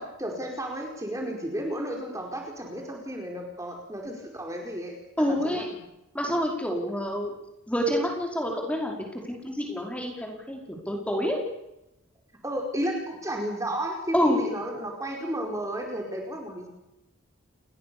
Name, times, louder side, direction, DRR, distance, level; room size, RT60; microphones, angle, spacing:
voice 1, 0.0-5.8 12.4-16.7, equal, 15° right, 1 dB, 4.9 m, -33 dB
voice 2, 5.2-5.7 6.1-7.3 7.7-10.6 10.9-11.4 14.1-14.4, equal, 5° left, 0 dB, 5.1 m, -27 dB
29.5 x 21.5 x 7.1 m, 0.88 s
head